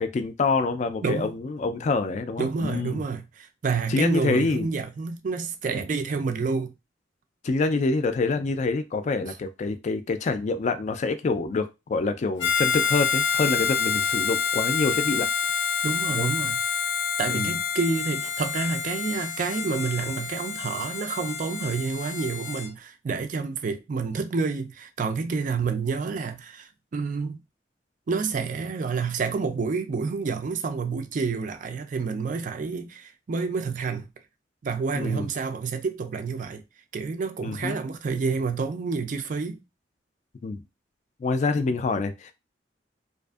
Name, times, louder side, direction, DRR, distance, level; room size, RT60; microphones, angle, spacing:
voice 1, 0.0-3.0 3.9-4.7 7.4-15.3 16.1-16.3 17.3-17.6 34.9-35.3 37.4-37.8 40.4-40.6 41.2-42.3, left 3 dB, 40° left, 0.3 m, -26 dB
voice 2, 1.0-1.3 2.4-6.7 15.8-16.6 17.2-27.4 28.1-34.1 34.6-36.6 36.9-39.6, right 4 dB, 45° right, 0.3 m, -29 dB
Harmonica, 12.4-22.7, left 7 dB, 90° left, 0.5 m, -27 dB
2.5 x 2.4 x 2.3 m
head